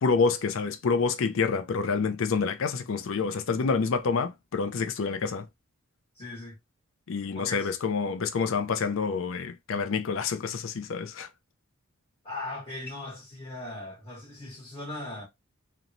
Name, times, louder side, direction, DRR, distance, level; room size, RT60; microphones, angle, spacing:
voice 1, 0.0-5.5 7.1-11.3, left 5 dB, 60° left, 0.4 m, -27 dB
voice 2, 6.1-6.6 7.3-7.7 12.2-15.3, left 2 dB, 25° left, 0.9 m, -39 dB
2.9 x 2.1 x 2.5 m
head